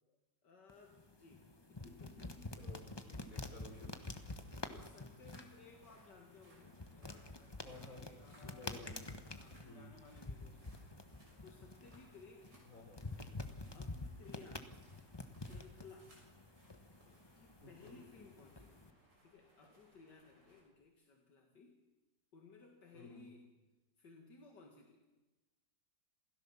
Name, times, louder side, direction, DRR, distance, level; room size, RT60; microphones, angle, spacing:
voice 1, 0.4-2.6 4.0-4.3 4.6-8.9 9.3-12.7 13.7-14.7 15.4-16.2 17.4-18.8 19.2-21.8 22.3-23.4 24.0-25.0, left 4 dB, 75° left, 2 dB, 2.6 m, -60 dB
sound 1, 0.7-18.9, left 2 dB, 15° left, 1.1 m, -49 dB
voice 2, 2.6-4.2 7.6-9.0 9.6-9.9 12.7-13.0 17.6-18.1 22.9-23.3, left 2 dB, 50° left, 2 dB, 4.6 m, -55 dB
sound 2, 3.1-20.6, right 1 dB, 85° right, 7.1 m, -68 dB
27.5 x 16.5 x 7.2 m, 1.1 s
omnidirectional pair, 1.9 m